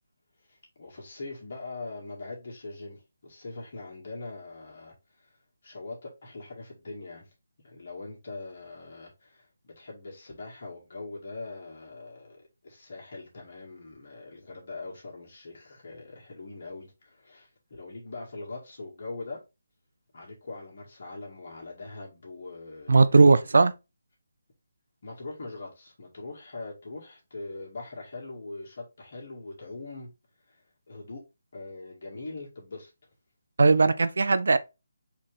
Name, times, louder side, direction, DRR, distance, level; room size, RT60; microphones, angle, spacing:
voice 1, 0.5-5.4 5.6-7.3 7.6-19.4 20.1-23.3 25.0-30.1 30.4-31.2 31.5-32.9, left 3 dB, 55° left, 1.9 m, -42 dB
voice 2, 22.9-23.7 33.6-34.6, right 3 dB, 70° right, 0.5 m, -18 dB
4.3 x 3.0 x 3.7 m
figure-of-eight pair, 160°, 0 cm